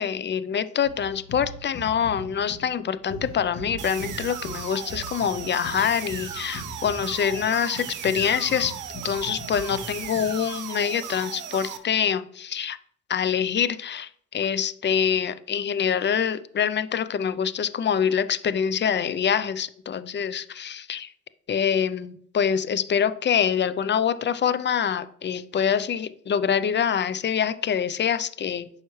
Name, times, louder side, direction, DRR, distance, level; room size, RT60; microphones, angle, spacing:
voice 1, 0.0-8.7 9.0-12.8 13.1-21.1 21.5-28.7, left 8 dB, 35° left, 15 dB, 0.5 m, -25 dB
sound 1, 0.8-10.4, equal, 70° left, 3.5 m, -40 dB
sound 2, 3.8-11.8, right 9 dB, 85° right, 0.8 m, -37 dB
9.2 x 5.7 x 3.2 m, 0.63 s
cardioid pair, 90°, 30 cm